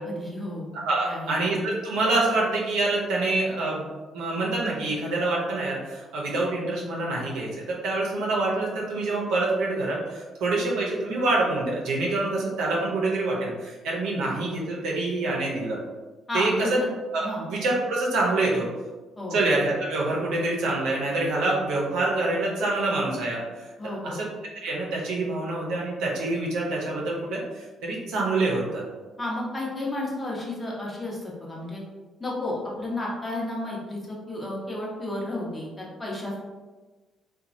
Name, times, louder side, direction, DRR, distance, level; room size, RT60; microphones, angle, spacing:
voice 1, 0.0-0.7 1.0-1.4 16.3-16.9 17.2-17.5 19.2-19.4 23.8-24.2 29.2-31.8 32.2-36.4, left 2 dB, 25° left, -4 dB, 0.9 m, -32 dB
voice 2, 0.9-3.8 4.1-15.8 16.3-16.8 17.1-18.7 19.3-24.3 24.5-28.8, right 2 dB, 90° right, -3 dB, 0.6 m, -26 dB
2.9 x 2.3 x 2.5 m, 1.2 s
cardioid pair, 90°, 0 cm